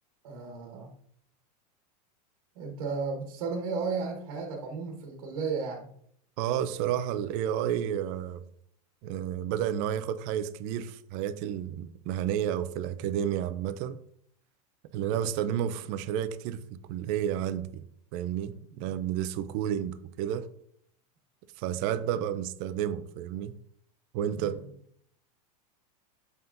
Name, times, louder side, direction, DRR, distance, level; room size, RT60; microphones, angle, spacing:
voice 1, 0.2-0.9 2.5-5.9 15.1-15.3 24.3-24.6, right 4 dB, 65° right, 1 dB, 1.3 m, -34 dB
voice 2, 6.4-8.4 9.0-14.0 14.9-17.8 18.1-20.5 21.6-23.5 24.1-24.6, right 10 dB, 35° right, 12 dB, 0.4 m, -31 dB
7.1 x 5.7 x 2.6 m, 0.67 s
supercardioid pair, 165°, 20 cm